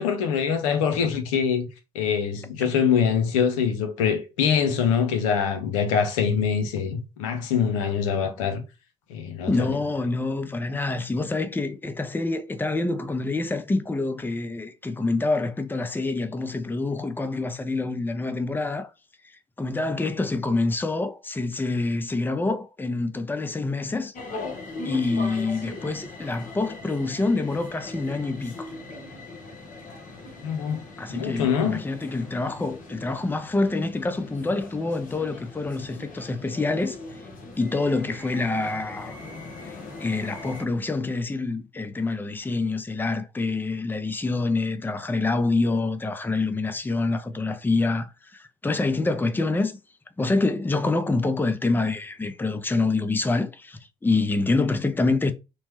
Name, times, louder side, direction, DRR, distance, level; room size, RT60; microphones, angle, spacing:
voice 1, 0.0-1.7 1.9-8.6 9.1-9.8 30.4-31.8, left 7 dB, 85° left, 0.6 m, -24 dB
voice 2, 9.5-18.9 19.6-24.1 24.8-28.7 31.0-37.0 37.6-39.2 39.7-49.8 50.2-55.3, left 3 dB, 10° left, 0.5 m, -26 dB
sound 1, 24.1-40.6, left 2 dB, 55° left, 0.9 m, -40 dB
3.0 x 2.1 x 3.0 m
hypercardioid pair, 55°, 17 cm